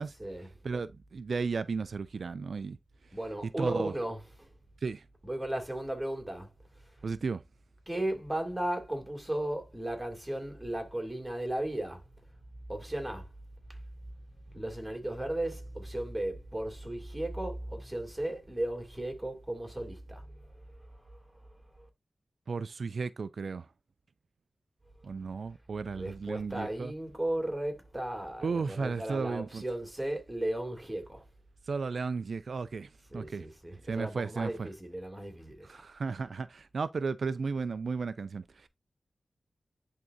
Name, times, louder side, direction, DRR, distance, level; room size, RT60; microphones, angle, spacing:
voice 1, 0.6-2.8 3.6-3.9 4.8-5.0 7.0-7.4 22.5-23.7 25.0-26.9 28.4-29.6 31.6-33.5 33.8-34.7 35.6-38.7, right 4 dB, 70° right, 0.3 m, -34 dB
voice 2, 3.1-4.5 5.2-6.5 7.9-12.0 12.7-13.3 14.5-20.3 20.9-21.1 21.8-21.9 26.0-31.3 33.1-35.8, right 1 dB, 10° right, 2.5 m, -35 dB
10.5 x 3.7 x 2.6 m
wide cardioid pair, 70°, 0 cm